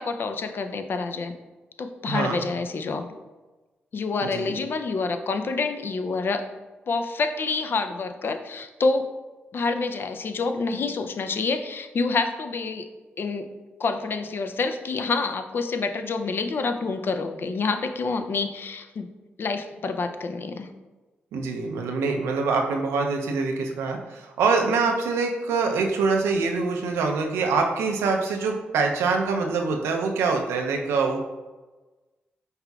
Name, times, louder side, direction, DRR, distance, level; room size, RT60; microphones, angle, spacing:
voice 1, 0.0-1.3 1.8-3.1 3.9-6.4 6.9-9.1 9.5-12.9 13.2-13.5 13.8-19.1 19.4-20.7, left 4 dB, 55° left, 7 dB, 0.4 m, -27 dB
voice 2, 2.1-2.4 4.2-4.5 21.3-31.2, right 4 dB, 90° right, 2 dB, 0.5 m, -24 dB
5.5 x 3.5 x 2.3 m, 1.2 s
supercardioid pair, 50°, 4 cm